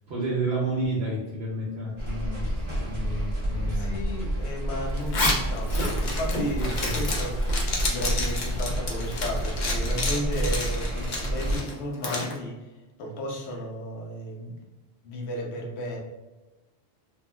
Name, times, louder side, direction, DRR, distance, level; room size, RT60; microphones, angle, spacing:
voice 1, 0.1-4.0 6.6-7.0, right 1 dB, 70° right, -5 dB, 0.9 m, -31 dB
sound 1, 2.0-11.6, right 1 dB, 30° right, 0.7 m, -29 dB
voice 2, 3.5-12.7 13.0-14.5 15.0-16.0, left 1 dB, 75° left, 0 dB, 0.9 m, -34 dB
Zipper (clothing), 5.0-12.3, left 2 dB, 50° left, 0.7 m, -30 dB
3.6 x 2.3 x 2.2 m, 1.1 s
omnidirectional pair, 1.1 m